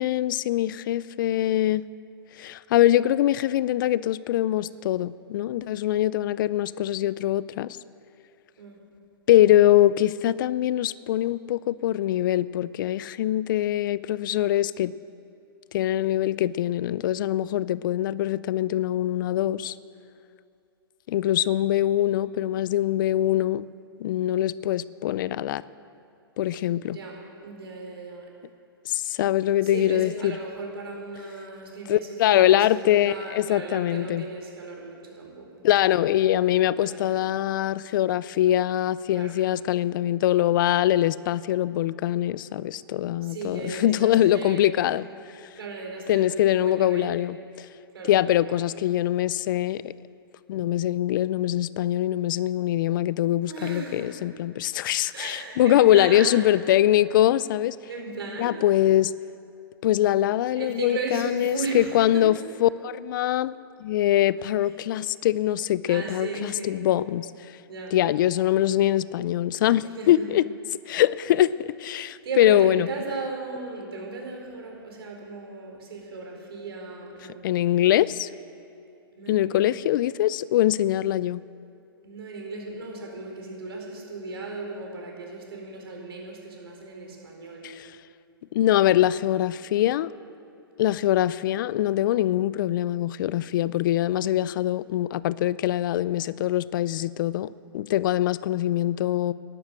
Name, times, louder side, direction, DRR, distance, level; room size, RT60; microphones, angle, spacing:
voice 1, 0.0-1.8 2.3-7.8 9.3-14.9 15.7-19.8 21.1-23.7 24.0-25.6 26.4-27.0 28.9-30.3 31.9-34.3 35.6-45.1 45.4-45.5 46.1-47.7 48.1-49.9 50.5-57.8 58.4-59.1 59.8-62.3 62.6-67.3 67.9-70.4 70.9-72.9 77.4-78.3 79.3-81.4 87.6-87.9 88.5-90.1 90.8-97.5 97.7-99.3, left 13 dB, 55° left, 19 dB, 0.4 m, -23 dB
voice 2, 26.8-27.2 27.4-28.2 29.6-35.6 36.7-37.2 39.1-39.4 43.2-44.9 45.6-47.2 47.9-48.6 53.5-54.2 55.1-56.3 57.8-58.6 60.6-62.5 64.4-64.5 65.9-66.8 67.7-68.0 69.9-70.3 72.0-77.4 79.1-79.8 82.0-87.7, right 3 dB, 75° right, 0 dB, 4.4 m, -36 dB
12.0 x 11.0 x 7.7 m, 2.6 s
hypercardioid pair, 125°, 13 cm